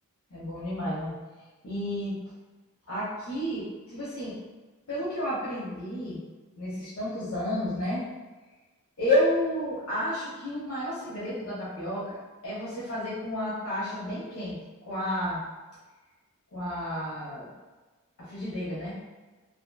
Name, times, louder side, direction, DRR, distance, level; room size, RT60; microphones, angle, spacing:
voice 1, 0.3-1.1 1.6-2.1 2.9-4.4 4.9-6.2 6.5-8.0 9.0-12.2 12.4-14.6 14.8-15.4 16.5-17.5 18.2-18.9, left 1 dB, 75° left, -9 dB, 0.8 m, -31 dB
2.8 x 2.5 x 2.2 m, 1.2 s
head